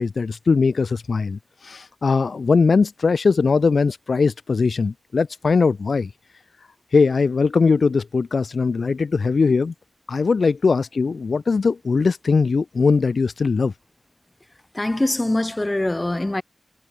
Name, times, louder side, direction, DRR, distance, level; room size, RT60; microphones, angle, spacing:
voice 1, 0.0-6.1 6.9-9.7 10.1-13.7, left 4 dB, 85° left, 0.7 m, -20 dB
voice 2, 14.7-16.4, left 1 dB, 25° left, 2.8 m, -23 dB
wide cardioid pair, 60°, 0 cm